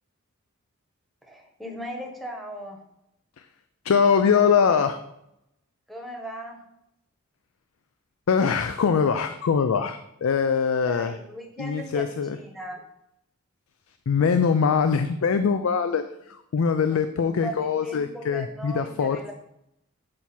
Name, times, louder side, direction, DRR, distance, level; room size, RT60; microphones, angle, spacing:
voice 1, 1.2-2.8 5.9-6.6 10.9-12.8 16.9-19.3, right 1 dB, ahead, 1 dB, 1.0 m, -38 dB
voice 2, 3.8-5.0 8.3-11.2 11.6-12.4 14.1-19.2, left 6 dB, 75° left, 9 dB, 0.4 m, -22 dB
7.6 x 4.6 x 4.2 m, 0.82 s
head